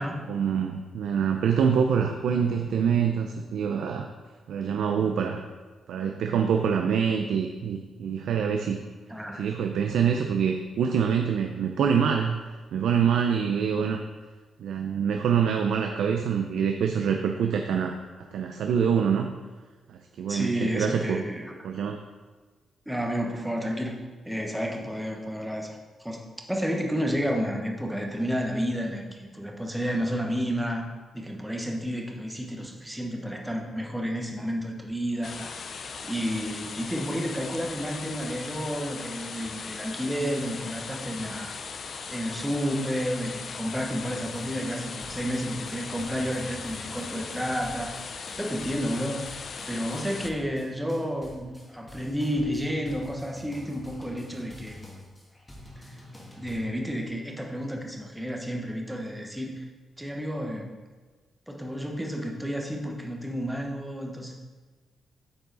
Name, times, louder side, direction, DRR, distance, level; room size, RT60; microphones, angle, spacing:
voice 1, 0.3-4.1 4.5-5.4 5.9-8.8 9.4-12.4 12.7-14.0 14.6-19.3 19.9-21.2 21.6-22.0, right 7 dB, 80° right, 4 dB, 0.5 m, -25 dB
voice 2, 9.1-9.4 20.3-21.7 22.9-24.0 24.2-26.2 26.5-30.9 31.1-35.6 36.0-41.6 42.1-47.9 48.4-54.8 55.9-56.0 56.4-59.7 60.0-60.7 61.5-64.4, equal, 5° right, 1 dB, 0.9 m, -31 dB
sound 1, 35.2-50.3, left 5 dB, 50° left, 0.5 m, -38 dB
sound 2, 44.2-56.6, left 1 dB, 15° left, 1.6 m, -47 dB
8.6 x 4.8 x 3.9 m, 1.3 s
cardioid pair, 120°, 0 cm